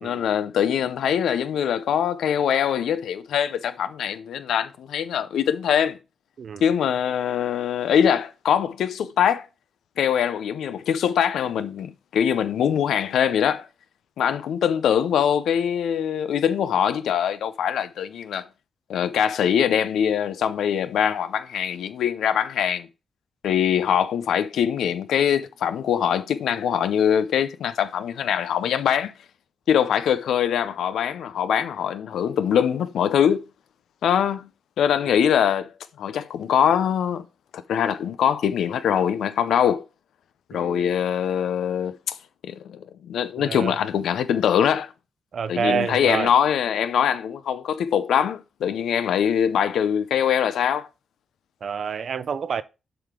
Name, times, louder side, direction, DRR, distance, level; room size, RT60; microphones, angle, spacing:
voice 1, 0.0-6.0 6.6-9.5 10.0-13.7 14.2-18.4 18.9-22.9 23.4-29.1 29.7-33.4 34.0-34.5 34.8-35.7 36.0-37.3 37.5-39.8 40.5-42.2 42.4-44.9 45.5-50.9, left 8 dB, 85° left, 0.5 m, -23 dB
voice 2, 35.1-35.4 40.5-41.0 43.4-43.8 45.3-46.3 51.6-52.6, right 6 dB, 65° right, 0.5 m, -28 dB
7.7 x 5.0 x 3.7 m
cardioid pair, 65°, 0 cm